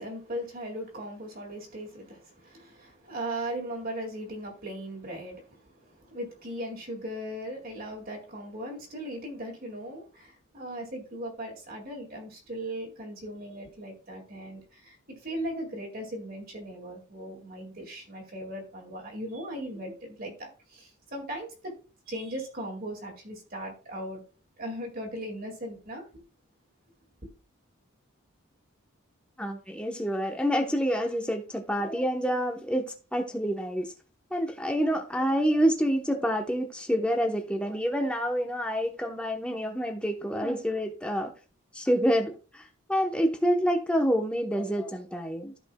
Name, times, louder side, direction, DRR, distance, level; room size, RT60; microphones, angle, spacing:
voice 1, 0.0-21.7 22.1-24.2 24.6-26.2, right 1 dB, 45° right, 2.2 m, -38 dB
voice 2, 29.4-32.8 33.1-33.9 34.3-41.3 41.7-45.5, equal, 5° left, 1.0 m, -27 dB
14.0 x 5.3 x 2.3 m
head